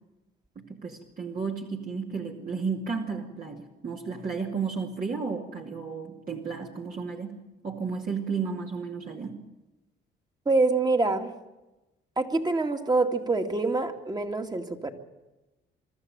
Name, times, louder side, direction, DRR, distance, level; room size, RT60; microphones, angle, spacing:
voice 1, 0.6-9.5, right 5 dB, 45° right, -1 dB, 2.4 m, -33 dB
voice 2, 10.5-11.3 12.2-14.9, right 3 dB, 20° right, 5 dB, 2.2 m, -25 dB
24.0 x 13.0 x 9.1 m, 1.0 s
cardioid pair, 90°, 20 cm